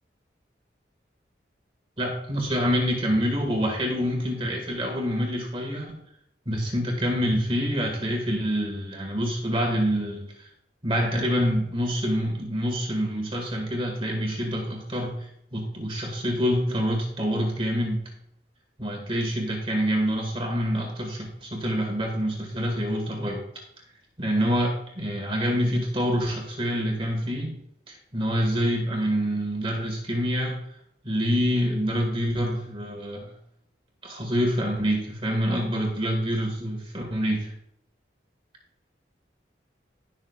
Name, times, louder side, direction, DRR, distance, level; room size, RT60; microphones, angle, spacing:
voice 1, 2.0-6.0 6.5-10.5 10.8-18.0 18.8-23.4 24.2-27.6 27.9-30.6 31.0-33.4 34.0-37.5, equal, 30° right, 1 dB, 2.0 m, -26 dB
18.5 x 6.4 x 2.4 m, 0.73 s
head